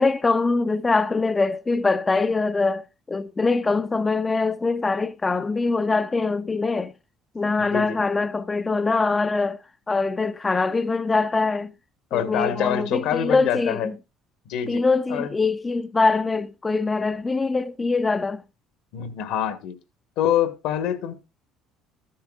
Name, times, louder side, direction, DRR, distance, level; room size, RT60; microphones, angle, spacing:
voice 1, 0.0-6.9 7.3-9.6 9.9-11.7 12.1-14.0 14.7-18.4, left 3 dB, 20° left, 0.4 m, -23 dB
voice 2, 7.6-8.0 12.1-13.9 14.5-14.8 15.1-15.3 18.9-19.7 20.2-21.1, left 10 dB, 75° left, 1.4 m, -25 dB
13.5 x 10.5 x 2.3 m
cardioid pair, 115°, 0 cm